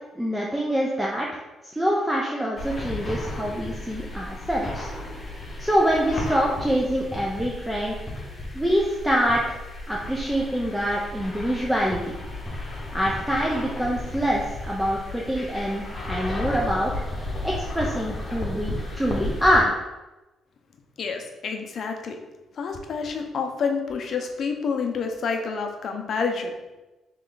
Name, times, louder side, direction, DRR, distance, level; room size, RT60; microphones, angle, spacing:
voice 1, 0.1-1.4 1.8-4.9 5.6-8.0 8.5-9.6 9.9-12.0 12.9-16.9 17.4-19.8, equal, 5° right, -3 dB, 0.5 m, -25 dB
sound 1, 2.6-19.6, left 1 dB, 30° left, 1.0 m, -34 dB
voice 2, 21.0-22.2 22.6-26.5, left 5 dB, 55° left, 4 dB, 0.6 m, -28 dB
3.3 x 3.0 x 3.8 m, 1.1 s
cardioid pair, 90°, 0 cm